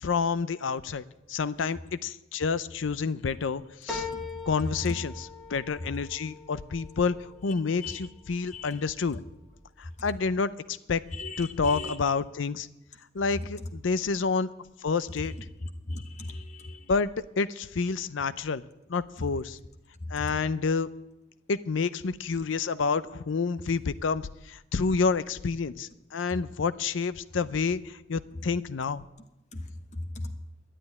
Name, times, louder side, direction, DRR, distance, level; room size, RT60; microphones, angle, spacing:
voice 1, 0.0-4.1 4.5-9.2 9.8-11.0 11.4-12.7 13.1-14.5 14.8-15.3 16.9-18.6 18.9-19.6 20.1-20.9 21.5-29.0, left 5 dB, 75° left, 0.5 m, -29 dB
sound 1, 3.9-8.6 9.1-9.8 10.2-10.3, left 3 dB, 5° right, 1.7 m, -42 dB
voice 2, 8.5-8.8 11.1-12.0 15.9-16.8 29.5-29.7 29.9-30.3, left 2 dB, 35° left, 0.9 m, -37 dB
11.0 x 10.0 x 9.5 m
head